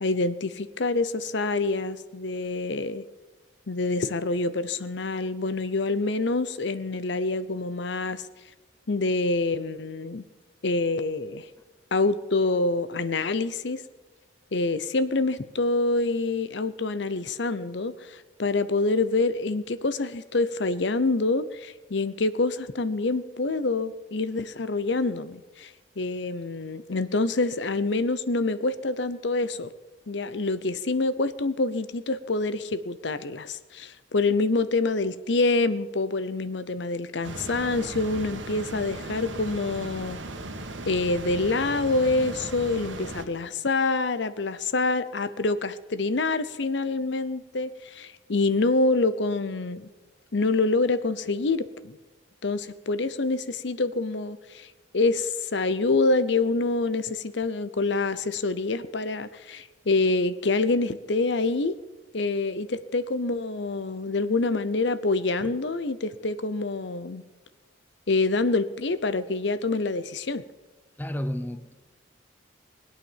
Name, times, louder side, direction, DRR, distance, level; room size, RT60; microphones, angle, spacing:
voice 1, 0.0-3.0 3.7-8.2 8.9-10.2 10.6-11.5 11.9-13.8 14.5-25.7 26.0-29.7 30.1-40.2 40.9-49.9 50.3-51.9 52.4-61.8 62.1-67.2 68.1-70.4, left 3 dB, 65° left, 12 dB, 0.8 m, -26 dB
sound 1, 37.2-43.2, right 2 dB, 80° right, 1.7 m, -37 dB
voice 2, 71.0-71.7, equal, 10° left, 11 dB, 0.8 m, -32 dB
20.5 x 8.8 x 7.4 m, 1.2 s
head